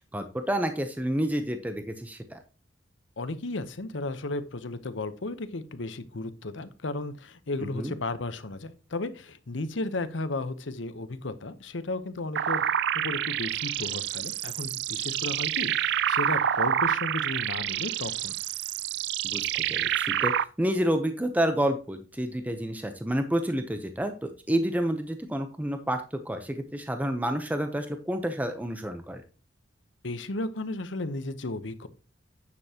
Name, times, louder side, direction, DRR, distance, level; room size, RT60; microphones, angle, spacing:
voice 1, 0.1-2.4 7.6-7.9 19.2-29.2, right 1 dB, 10° right, 7 dB, 0.7 m, -29 dB
voice 2, 3.2-12.6 12.9-18.3 30.0-31.9, left 2 dB, 80° left, 12 dB, 0.9 m, -34 dB
sound 1, 12.4-20.4, right 10 dB, 65° right, 0.4 m, -28 dB
9.6 x 6.8 x 2.9 m, 0.35 s
head